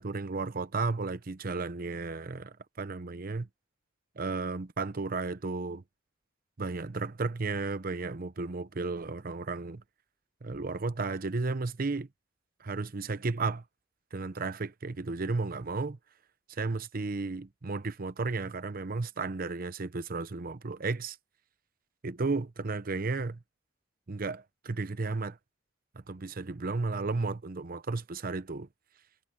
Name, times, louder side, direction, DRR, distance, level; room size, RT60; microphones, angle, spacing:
voice 1, 0.0-3.5 4.2-5.8 6.6-9.8 10.4-12.1 12.6-13.6 14.1-16.0 16.5-21.2 22.0-23.4 24.1-25.4 25.9-28.7, right 3 dB, 50° right, 0.8 m, -33 dB
head